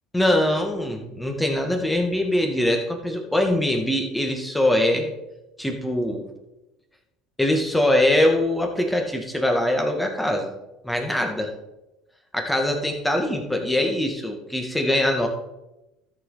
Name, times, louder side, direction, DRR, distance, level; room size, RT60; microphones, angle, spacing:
voice 1, 0.1-5.1 5.6-6.2 7.4-10.5 10.8-11.6 12.3-15.3, left 1 dB, 5° left, 3 dB, 2.1 m, -22 dB
13.5 x 6.2 x 4.2 m, 0.95 s
hypercardioid pair, 75°, 0 cm